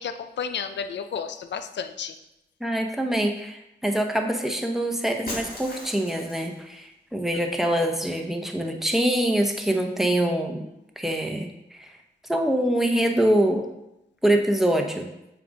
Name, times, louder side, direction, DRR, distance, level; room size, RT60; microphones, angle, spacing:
voice 1, 0.0-2.1, left 7 dB, 80° left, 9 dB, 0.5 m, -32 dB
voice 2, 2.6-10.6 11.0-11.9 12.3-13.7 14.2-15.1, right 1 dB, ahead, 3 dB, 0.9 m, -24 dB
Shatter, 5.3-6.6, left 1 dB, 55° left, 1.8 m, -37 dB
7.5 x 2.5 x 5.1 m, 0.88 s
cardioid pair, 55°, 18 cm